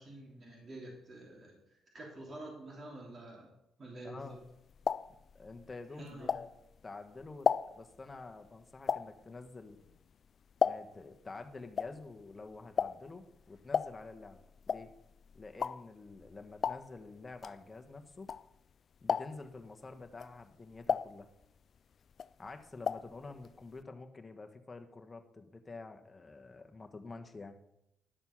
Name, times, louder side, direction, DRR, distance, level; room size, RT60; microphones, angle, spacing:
voice 1, 0.0-3.5 3.8-4.4 5.9-6.4, right 1 dB, 40° right, -1 dB, 3.0 m, -48 dB
voice 2, 4.0-4.4 5.3-6.5 6.8-9.8 10.6-14.4 14.7-14.9 15.3-18.3 19.0-21.3 22.4-27.6, left 3 dB, 25° left, 5 dB, 1.3 m, -48 dB
sound 1, 4.3-6.8 7.2-11.1 11.4-18.7 19.0-19.6 20.1-21.8 22.1-23.2 23.4-23.5 23.8-23.9, left 7 dB, 50° left, 0.3 m, -35 dB
11.5 x 6.8 x 5.9 m, 0.84 s
cardioid pair, 90°, 0 cm